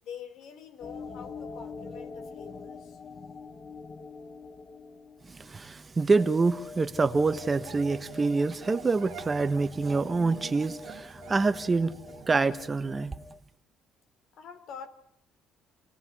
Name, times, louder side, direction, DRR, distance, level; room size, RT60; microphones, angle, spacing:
voice 1, 0.0-3.0 14.3-14.9, left 8 dB, 65° left, 3.8 m, -45 dB
sound 1, 0.8-5.6, left 4 dB, 30° left, 1.9 m, -43 dB
voice 2, 5.3-11.9 12.3-13.1, right 3 dB, 20° right, 1.2 m, -26 dB
sound 2, 6.1-13.4, left 3 dB, 10° left, 1.5 m, -46 dB
sound 3, 7.2-12.5, right 12 dB, 65° right, 1.7 m, -47 dB
27.5 x 18.0 x 9.8 m
cardioid pair, 140°, 0 cm